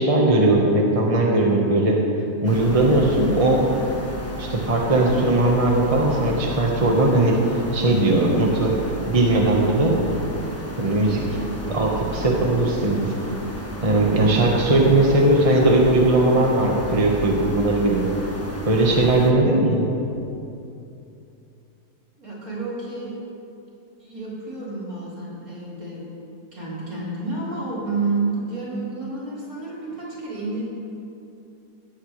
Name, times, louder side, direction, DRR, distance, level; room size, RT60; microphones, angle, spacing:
voice 1, 0.0-2.0 2.4-3.6 4.4-7.4 7.7-8.8 9.1-10.0 10.8-11.2 11.7-13.1 13.8-18.1 18.7-19.9, right 2 dB, 25° right, -1 dB, 1.4 m, -19 dB
sound 1, 2.4-19.3, equal, 10° left, 1.2 m, -33 dB
voice 2, 22.2-23.2 24.0-26.1 26.5-30.6, right 3 dB, 65° right, -8 dB, 4.8 m, -30 dB
18.0 x 15.0 x 3.3 m, 2.8 s
omnidirectional pair, 1.7 m